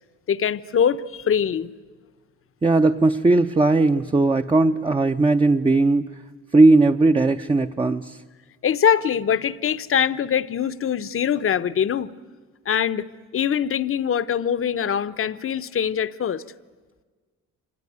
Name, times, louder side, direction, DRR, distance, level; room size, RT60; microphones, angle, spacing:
voice 1, 0.3-1.7 8.6-12.1 12.7-16.4, left 8 dB, 45° left, 14 dB, 0.8 m, -23 dB
voice 2, 2.6-6.1 6.5-8.2, right 2 dB, 15° right, 5 dB, 0.7 m, -18 dB
25.5 x 19.5 x 9.5 m, 1.5 s
cardioid pair, 90°, 30 cm